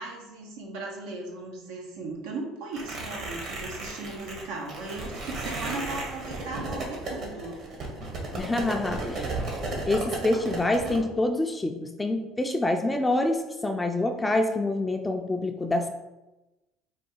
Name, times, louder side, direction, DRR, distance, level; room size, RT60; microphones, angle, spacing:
voice 1, 0.0-7.6, right 3 dB, 85° right, 1 dB, 0.7 m, -37 dB
sound 1, 2.7-11.0, right 2 dB, 55° right, 1.2 m, -34 dB
voice 2, 8.4-9.3 9.9-15.9, left 2 dB, 10° left, 5 dB, 0.3 m, -26 dB
4.6 x 2.3 x 4.4 m, 1.0 s
cardioid pair, 115°, 0 cm